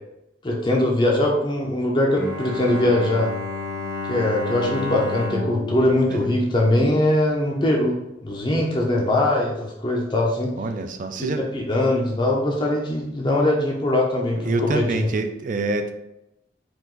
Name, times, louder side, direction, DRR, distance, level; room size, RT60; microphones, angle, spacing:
voice 1, 0.4-3.3 4.1-8.0 8.2-10.5 11.2-15.1, left 1 dB, 25° left, -1 dB, 0.5 m, -21 dB
Bowed string instrument, 2.1-7.1, left 3 dB, 70° left, 1.0 m, -31 dB
voice 2, 10.6-11.5 14.4-15.9, right 3 dB, 45° right, 8 dB, 0.4 m, -26 dB
4.7 x 2.4 x 3.8 m, 0.88 s
head